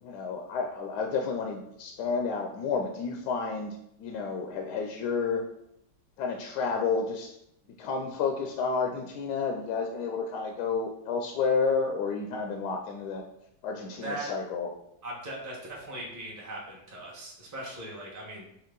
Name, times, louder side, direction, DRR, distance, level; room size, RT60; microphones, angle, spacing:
voice 1, 0.0-5.4 6.2-7.3 7.8-13.2 13.6-14.7, left 5 dB, 75° left, 3 dB, 1.0 m, -30 dB
voice 2, 15.0-18.5, right 1 dB, 15° right, -4 dB, 0.7 m, -39 dB
4.5 x 3.1 x 3.8 m, 0.78 s
omnidirectional pair, 2.0 m